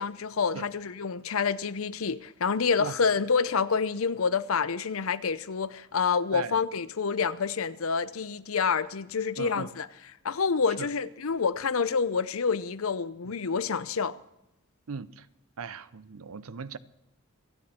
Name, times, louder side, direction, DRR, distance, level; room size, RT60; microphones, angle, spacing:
voice 1, 0.0-9.9 10.2-14.2, left 5 dB, 75° left, 0.7 m, -28 dB
voice 2, 9.4-9.7 10.8-10.9 14.9-15.3 15.6-16.8, right 5 dB, 80° right, 0.7 m, -38 dB
27.0 x 9.6 x 4.3 m
head